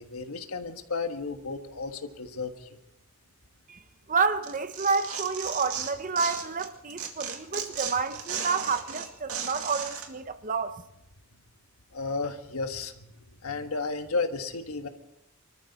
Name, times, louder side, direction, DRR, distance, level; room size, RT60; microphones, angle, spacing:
voice 1, 0.0-2.8 11.9-13.1 13.4-14.9, left 4 dB, 90° left, 1.4 m, -33 dB
voice 2, 4.1-10.8, right 4 dB, 35° right, 0.8 m, -29 dB
Tearing, 4.4-6.7 7.0-10.1, right 7 dB, 90° right, 2.2 m, -35 dB
25.0 x 13.5 x 4.1 m
head